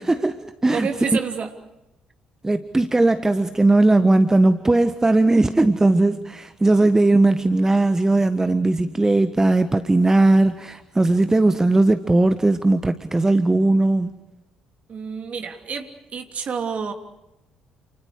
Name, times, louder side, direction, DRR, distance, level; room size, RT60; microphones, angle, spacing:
voice 1, 0.0-0.9 2.4-14.1, right 2 dB, 15° right, 1.4 m, -18 dB
voice 2, 0.7-1.5 14.9-16.9, right 6 dB, 40° right, 3.1 m, -29 dB
29.5 x 29.0 x 4.8 m
figure-of-eight pair, 45°, 3 cm